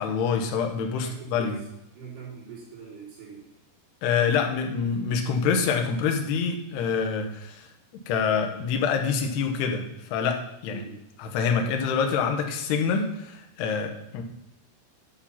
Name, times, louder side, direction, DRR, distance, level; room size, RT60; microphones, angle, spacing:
voice 1, 0.0-1.6 4.0-7.7 8.1-10.8 11.2-14.2, left 6 dB, 75° left, 3 dB, 3.2 m, -26 dB
voice 2, 1.0-1.7 2.0-3.6 10.7-11.0, right 5 dB, 70° right, -6 dB, 6.0 m, -42 dB
11.5 x 6.7 x 5.8 m, 0.82 s
omnidirectional pair, 4.9 m